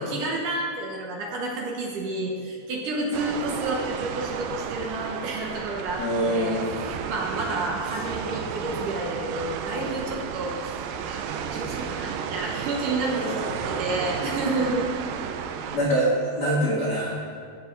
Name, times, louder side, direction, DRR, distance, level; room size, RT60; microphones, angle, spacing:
voice 1, 0.0-14.9, right 2 dB, 65° right, -1 dB, 2.4 m, -30 dB
sound 1, 3.1-15.8, right 7 dB, 85° right, 2.0 m, -33 dB
voice 2, 6.0-6.7 13.1-13.8 15.7-17.2, right 1 dB, 65° left, -6 dB, 0.9 m, -25 dB
14.5 x 8.3 x 3.9 m, 2.2 s
omnidirectional pair, 4.6 m